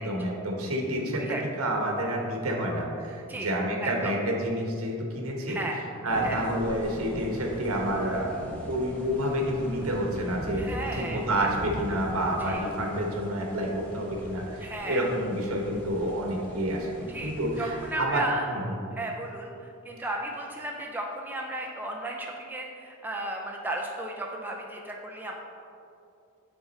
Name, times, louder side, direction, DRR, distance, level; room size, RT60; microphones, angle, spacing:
voice 1, 0.0-5.6 6.0-8.3 8.7-18.2 18.5-18.7, right 1 dB, 85° right, 0 dB, 1.1 m, -29 dB
voice 2, 3.8-4.1 5.5-5.8 6.2-6.4 10.6-11.2 12.5-12.6 14.6-15.1 17.1-18.5 18.9-25.4, right 1 dB, 10° right, -1 dB, 0.4 m, -34 dB
sound 1, 6.1-17.9, equal, 5° left, 1.1 m, -41 dB
8.2 x 3.6 x 4.1 m, 2.5 s
head